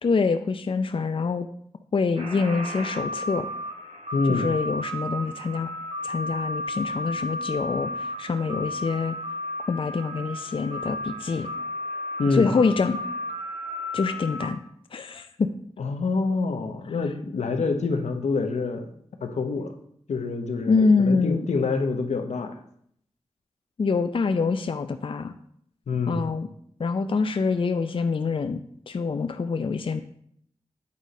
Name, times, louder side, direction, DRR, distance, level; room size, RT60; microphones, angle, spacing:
voice 1, 0.0-1.5 1.9-3.5 4.3-5.7 6.0-9.2 9.7-11.5 12.3-13.0 13.9-14.6 14.9-15.5 20.7-21.5 23.8-25.3 26.1-26.5 26.8-30.0, left 4 dB, 50° left, 9 dB, 0.5 m, -25 dB
sound 1, 2.2-14.5, left 1 dB, 65° right, 2.2 m, -33 dB
voice 2, 4.1-4.5 12.2-12.5 15.8-18.9 19.2-19.8 20.1-22.6 25.9-26.3, left 4 dB, 90° left, 6 dB, 0.8 m, -26 dB
8.4 x 4.1 x 5.0 m, 0.67 s
cardioid pair, 60°, 11 cm